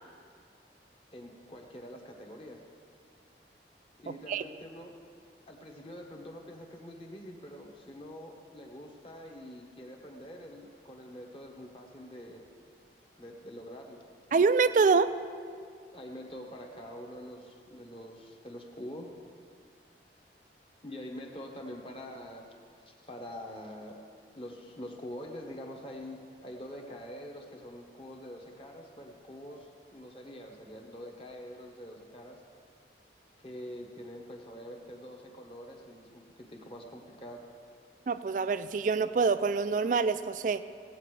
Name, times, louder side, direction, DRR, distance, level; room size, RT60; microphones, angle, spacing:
voice 1, 1.1-2.7 4.0-4.9 5.5-12.4 13.2-14.0 15.9-19.1 20.8-22.4 22.8-24.0 24.3-32.4 33.4-37.5, equal, 30° left, 1 dB, 1.2 m, -45 dB
voice 2, 4.1-4.4 14.3-15.1 38.1-40.6, right 4 dB, 45° right, 13 dB, 0.3 m, -26 dB
17.0 x 8.5 x 3.3 m, 2.1 s
head